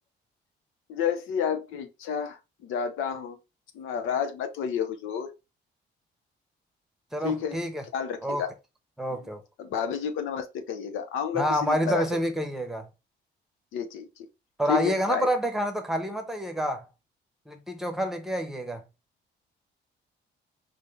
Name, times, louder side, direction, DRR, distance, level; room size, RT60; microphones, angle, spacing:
voice 1, 0.9-3.4 3.7-5.3 7.2-7.6 7.9-8.5 9.6-12.0 13.7-14.3 14.7-15.3, left 7 dB, 90° left, 0.7 m, -30 dB
voice 2, 7.1-7.8 8.2-8.4 9.0-9.4 11.3-12.9 14.6-16.8 17.5-18.8, equal, ahead, 1.0 m, -28 dB
3.7 x 2.7 x 3.3 m
cardioid pair, 90°, 20 cm